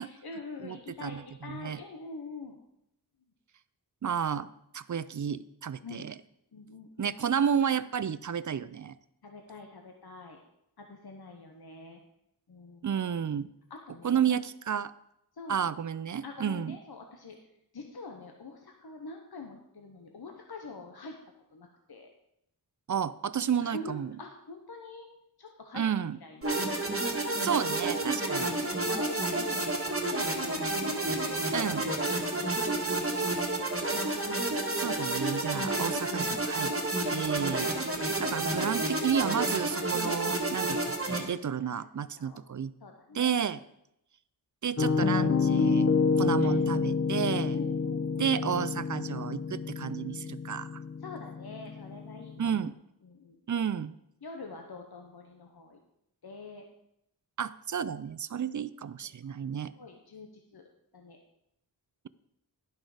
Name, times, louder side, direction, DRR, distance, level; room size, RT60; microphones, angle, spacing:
voice 1, 0.0-2.6 5.8-6.1 6.5-7.2 9.2-10.4 10.8-12.0 12.5-12.9 13.7-14.2 15.4-15.6 16.2-17.4 17.7-21.2 21.5-22.1 23.6-25.1 25.4-26.5 28.2-28.3 28.6-30.7 32.3-32.7 33.7-33.8 40.6-40.7 41.6-41.7 42.2-42.4 42.8-43.4 46.4-46.6 47.5-48.3 51.0-52.6 53.0-53.6 54.2-55.8 56.2-56.6 59.2-59.3 59.8-60.6 60.9-61.2, left 3 dB, 70° left, 3 dB, 1.0 m, -45 dB
voice 2, 0.6-1.8 4.0-4.5 4.7-6.1 7.0-8.9 12.8-13.5 14.0-14.9 15.5-16.8 22.9-24.1 25.7-26.2 27.4-28.5 31.5-31.9 34.8-36.7 37.1-37.7 38.2-42.7 43.1-43.6 44.6-45.9 46.2-47.6 48.2-50.8 52.4-52.7 53.5-54.0 57.4-59.7, right 8 dB, 50° right, 17 dB, 0.4 m, -31 dB
sound 1, 26.4-41.2, right 2 dB, 35° right, 1.6 m, -30 dB
Piano, 44.8-52.6, left 4 dB, 40° left, 0.6 m, -28 dB
11.0 x 6.3 x 4.8 m, 0.80 s
wide cardioid pair, 60°, 39 cm